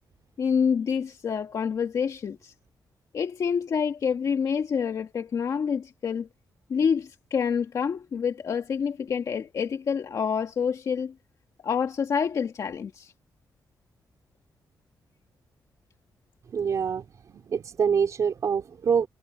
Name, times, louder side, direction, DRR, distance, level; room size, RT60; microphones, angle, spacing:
voice 1, 0.4-2.5 3.1-6.3 6.7-11.1 11.6-13.1, left 6 dB, 50° left, 1.9 m, -27 dB
voice 2, 16.5-19.1, right 6 dB, 50° right, 3.9 m, -26 dB
wide cardioid pair, 165°, 7 cm